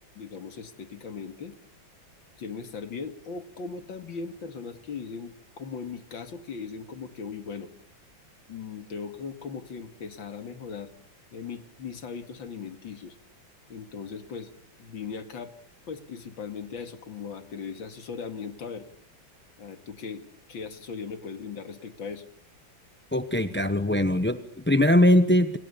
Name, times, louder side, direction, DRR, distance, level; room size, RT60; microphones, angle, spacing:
voice 1, 0.2-1.5 2.4-7.7 8.5-10.9 11.3-13.2 13.7-14.5 14.8-15.5 15.9-18.9 19.6-22.3, left 5 dB, 75° left, 9 dB, 2.8 m, -38 dB
voice 2, 23.1-25.6, left 1 dB, 10° left, 10 dB, 0.6 m, -21 dB
29.0 x 28.5 x 7.1 m, 0.66 s
omnidirectional pair, 2.1 m